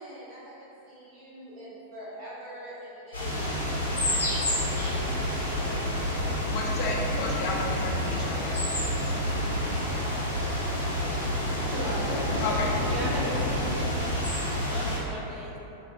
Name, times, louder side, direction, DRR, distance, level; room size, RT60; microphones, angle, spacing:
voice 1, 0.0-3.5 4.1-6.5 11.6-12.4, right 1 dB, 55° right, -17 dB, 1.4 m, -41 dB
sound 1, 3.1-15.0, left 1 dB, 75° left, 0.8 m, -29 dB
voice 2, 6.5-8.6 12.4-12.7, left 3 dB, 40° left, -2 dB, 0.4 m, -32 dB
sound 2, 7.1-13.7, left 2 dB, 90° right, 0.8 m, -37 dB
voice 3, 12.9-14.3 14.6-15.6, right 1 dB, 25° right, -5 dB, 0.6 m, -37 dB
2.9 x 2.8 x 2.6 m, 3.0 s
figure-of-eight pair, 90°, 0 cm